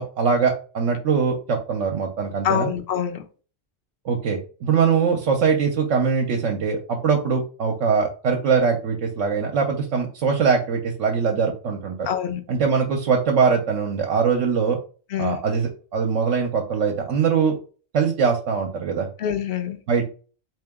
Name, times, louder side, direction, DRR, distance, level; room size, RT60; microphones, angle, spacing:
voice 1, 0.0-2.7 4.0-12.1 12.5-14.8 15.2-17.6 17.9-19.1 19.9-20.0, right 6 dB, 75° right, 2 dB, 1.0 m, -22 dB
voice 2, 2.4-3.2 12.1-12.4 15.1-15.4 19.2-19.8, left 9 dB, 55° left, 7 dB, 0.7 m, -25 dB
3.7 x 3.0 x 3.5 m, 0.38 s
omnidirectional pair, 1.3 m